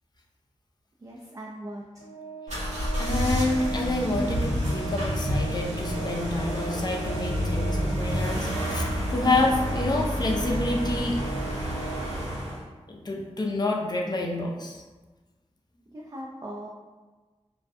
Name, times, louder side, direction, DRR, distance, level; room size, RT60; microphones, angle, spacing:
voice 1, 1.0-2.1 15.9-16.7, right 1 dB, 30° right, -3 dB, 0.3 m, -40 dB
Organ, 2.0-12.7, right 5 dB, 90° left, 0.8 m, -39 dB
sound 1, 2.5-12.6, equal, 90° right, 0.8 m, -29 dB
voice 2, 3.0-11.2 12.9-14.8, left 2 dB, 40° left, -1 dB, 0.5 m, -28 dB
2.3 x 2.2 x 2.6 m, 1.3 s
cardioid pair, 45°, 11 cm